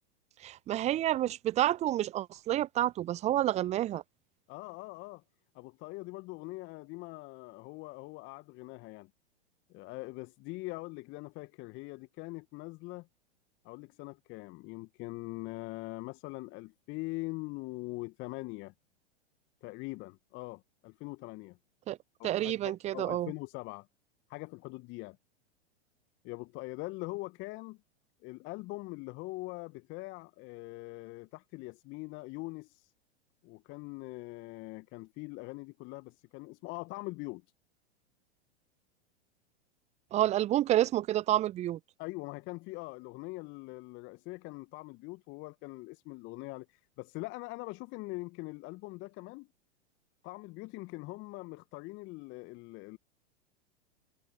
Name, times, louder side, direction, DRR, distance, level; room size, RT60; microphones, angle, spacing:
voice 1, 0.4-4.0 21.9-22.0 22.2-23.3 40.1-41.8, right 13 dB, 20° right, 0.6 m, -29 dB
voice 2, 4.5-5.2 5.5-9.1 9.7-13.1 13.6-18.7 19.6-21.6 22.2-23.9 24.3-25.2 26.2-27.8 28.2-32.9 33.4-37.4 42.0-46.7 47.0-49.5 50.2-53.0, left 23 dB, 35° left, 1.0 m, -42 dB
figure-of-eight pair, 100°, 34 cm